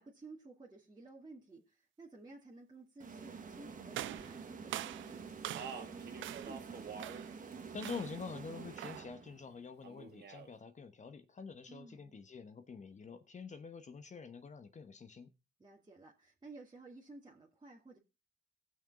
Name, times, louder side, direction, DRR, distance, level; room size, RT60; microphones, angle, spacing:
voice 1, 0.0-5.2 5.5-7.0 11.7-12.2 15.6-18.0, right 3 dB, 20° right, 2.2 m, -54 dB
sound 1, 3.0-9.6, right 5 dB, 40° right, 1.7 m, -48 dB
sound 2, 3.9-5.9 6.2-6.6 7.0-7.4 7.8-8.2 8.8-9.1, right 14 dB, 75° right, 0.5 m, -44 dB
Speech, 5.3-7.2 7.5-8.4 9.8-10.5, right 5 dB, 55° right, 2.2 m, -48 dB
voice 2, 7.7-15.3, left 5 dB, 35° left, 1.2 m, -47 dB
18.0 x 6.3 x 3.8 m
cardioid pair, 90°, 20 cm